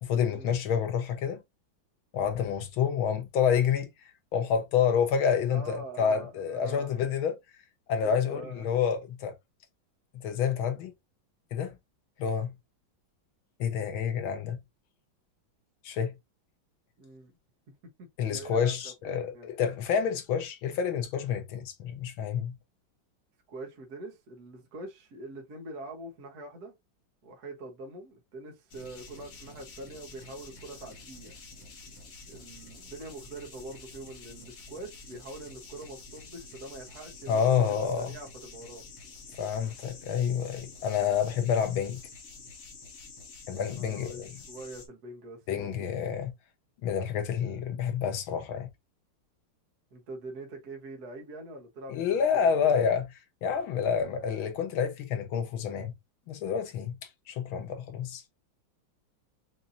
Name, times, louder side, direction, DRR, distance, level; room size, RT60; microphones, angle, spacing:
voice 1, 0.0-1.4 2.1-3.9 4.3-7.4 7.9-9.3 10.2-10.9 11.5-11.7 12.2-12.5 13.6-14.6 15.8-16.1 18.2-22.5 37.3-38.1 39.4-42.0 43.5-44.3 45.5-46.3 46.8-48.7 51.9-53.1 53.4-55.9 56.3-56.9 57.3-58.2, left 7 dB, 90° left, 1.8 m, -28 dB
voice 2, 5.5-6.9 8.0-8.6 17.0-17.3 18.2-19.5 23.5-26.7 27.2-31.3 32.3-38.8 43.5-46.0 49.9-52.7, right 2 dB, 55° right, 1.5 m, -44 dB
sound 1, 28.7-44.9, left 3 dB, 50° left, 1.4 m, -48 dB
5.6 x 2.8 x 2.5 m
omnidirectional pair, 2.2 m